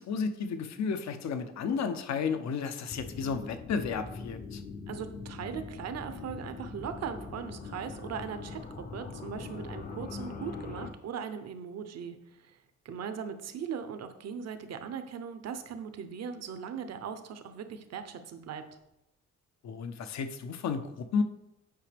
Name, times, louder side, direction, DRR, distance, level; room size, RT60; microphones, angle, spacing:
voice 1, 0.0-4.6 19.6-21.2, left 5 dB, 65° left, 9 dB, 0.8 m, -32 dB
sound 1, 2.9-10.9, left 4 dB, 30° left, 0.7 m, -42 dB
voice 2, 4.9-12.6 12.8-18.6, right 7 dB, 60° right, 9 dB, 0.8 m, -39 dB
9.0 x 5.0 x 3.4 m, 0.87 s
cardioid pair, 90°, 30 cm